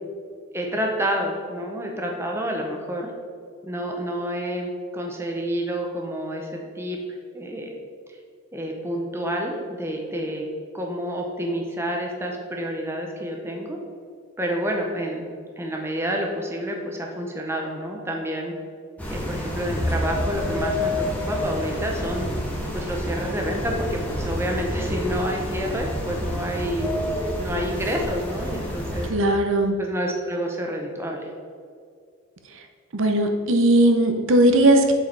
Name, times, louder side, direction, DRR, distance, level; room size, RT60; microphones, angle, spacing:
voice 1, 0.5-3.1 3.6-7.0 7.3-7.7 8.5-10.5 10.7-13.8 14.4-15.3 15.6-18.5 19.1-22.3 22.7-26.9 27.4-29.1 29.8-31.3, equal, 10° right, 1 dB, 0.7 m, -29 dB
sound 1, 19.0-29.1, left 1 dB, 5° left, 1.0 m, -28 dB
voice 2, 29.1-29.8 32.9-34.9, right 1 dB, 70° right, 4 dB, 0.7 m, -18 dB
7.2 x 4.7 x 4.6 m, 2.2 s
head